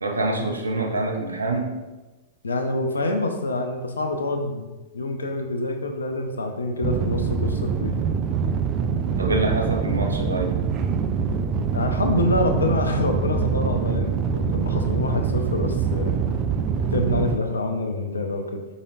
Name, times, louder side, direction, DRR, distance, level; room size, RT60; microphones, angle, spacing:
voice 1, 0.0-1.7 9.2-10.6, right 2 dB, 80° right, 2 dB, 0.7 m, -25 dB
voice 2, 2.4-7.9 11.7-16.2 16.9-18.6, left 2 dB, 75° left, 5 dB, 0.6 m, -26 dB
sound 1, 6.8-17.4, right 6 dB, 35° right, 0.4 m, -24 dB
5.0 x 4.0 x 2.6 m, 1.1 s
figure-of-eight pair, 95°, 0 cm